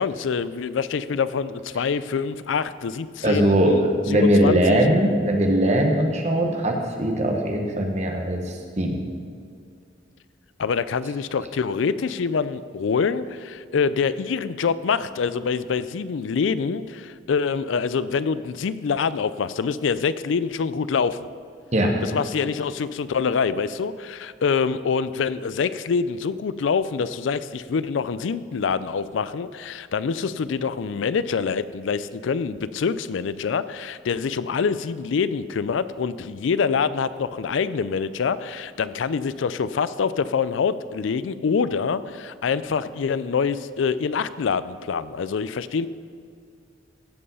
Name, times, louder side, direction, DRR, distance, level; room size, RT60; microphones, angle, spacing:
voice 1, 0.0-4.8 10.6-21.3 22.0-45.9, left 5 dB, 80° left, 15 dB, 0.4 m, -25 dB
voice 2, 3.2-8.4 8.8-9.0 21.7-21.9, right 1 dB, 35° right, 2 dB, 1.3 m, -20 dB
16.0 x 5.5 x 5.6 m, 2.3 s
head